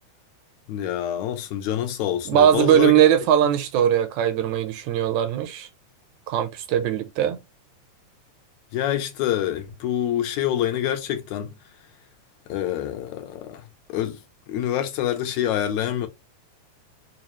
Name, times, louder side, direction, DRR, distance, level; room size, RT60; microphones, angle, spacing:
voice 1, 0.7-3.0 3.5-3.6 8.7-11.5 12.5-13.6 13.9-14.2 14.5-16.1, left 11 dB, 80° left, 2.0 m, -26 dB
voice 2, 2.3-5.7 6.3-7.4, right 10 dB, 80° right, 1.9 m, -20 dB
4.8 x 2.3 x 2.9 m
omnidirectional pair, 3.4 m